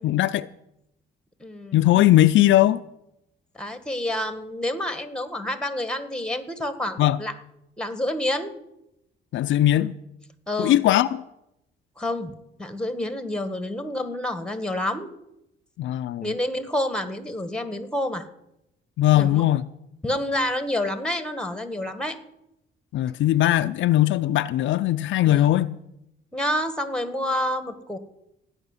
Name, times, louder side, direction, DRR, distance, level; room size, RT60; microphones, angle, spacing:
voice 1, 0.0-0.5 1.7-2.8 7.0-7.2 9.3-9.9 10.6-11.2 15.8-16.3 19.0-19.7 22.9-25.8, left 14 dB, 75° left, 0.5 m, -19 dB
voice 2, 1.4-1.9 3.5-7.3 7.8-8.5 10.5-10.8 12.0-12.3 12.6-15.1 16.2-18.3 19.1-19.4 20.0-22.1 25.2-25.5 26.3-28.0, left 1 dB, 5° left, 1.7 m, -28 dB
16.0 x 5.9 x 9.7 m
cardioid pair, 90°, 20 cm